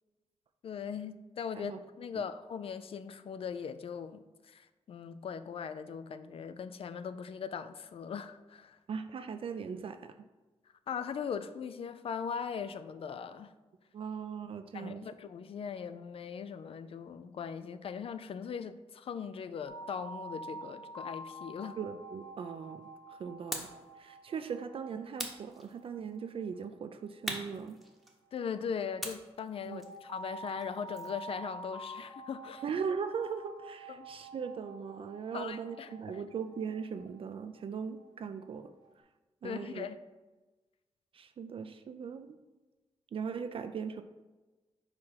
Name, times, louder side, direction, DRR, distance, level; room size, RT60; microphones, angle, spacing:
voice 1, 0.6-8.8 10.9-13.5 14.7-21.8 28.3-32.6 34.0-34.1 35.3-36.2 39.4-40.0, left 6 dB, 60° left, 11 dB, 0.3 m, -40 dB
voice 2, 8.9-10.1 13.9-15.1 21.8-22.8 23.1-23.7 24.0-27.8 29.7-29.8 32.6-38.7 39.4-39.9 41.1-42.4 43.1-44.0, right 6 dB, 60° right, 9 dB, 0.4 m, -39 dB
sound 1, 19.7-28.5 29.7-38.9, right 1 dB, 40° left, 0.7 m, -48 dB
sound 2, 23.5-23.9 25.2-26.1 27.3-28.4 29.0-31.2, equal, ahead, 0.9 m, -42 dB
4.9 x 4.7 x 5.6 m, 1.2 s
wide cardioid pair, 150°, 11 cm